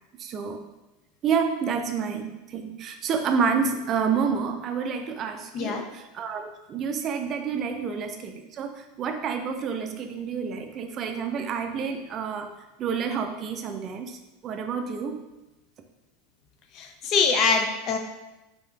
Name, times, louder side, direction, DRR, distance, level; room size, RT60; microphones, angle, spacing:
voice 1, 0.2-0.6 1.2-12.5 12.8-15.2, right 6 dB, 40° right, 6 dB, 0.4 m, -29 dB
voice 2, 16.8-18.0, left 5 dB, 45° left, 5 dB, 0.5 m, -23 dB
4.2 x 2.7 x 2.4 m, 1.0 s
figure-of-eight pair, 80°, 0 cm